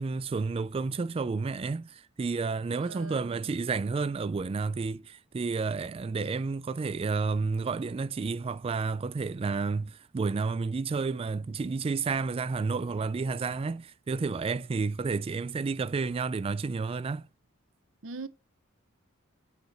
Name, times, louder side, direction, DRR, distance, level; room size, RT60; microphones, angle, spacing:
voice 1, 0.0-17.3, right 4 dB, 25° right, 0.3 m, -31 dB
voice 2, 2.8-3.5 18.0-18.3, right 3 dB, 65° right, 0.7 m, -41 dB
9.1 x 5.0 x 4.4 m
head